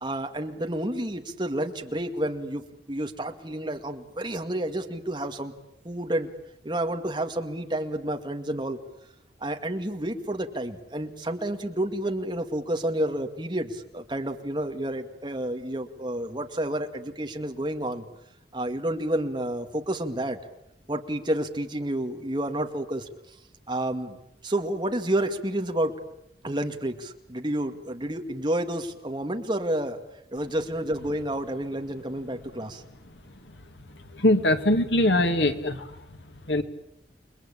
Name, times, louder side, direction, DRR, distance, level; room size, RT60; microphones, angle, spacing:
voice 1, 0.0-5.5 5.8-6.3 6.6-8.8 9.4-18.0 18.5-20.4 20.9-23.1 23.7-24.2 24.4-26.0 26.4-30.0 30.3-32.8, right 1 dB, 25° right, 5 dB, 2.3 m, -30 dB
voice 2, 34.1-36.0 36.5-36.6, left 1 dB, 90° left, 7 dB, 2.5 m, -22 dB
29.0 x 22.0 x 8.9 m, 0.80 s
head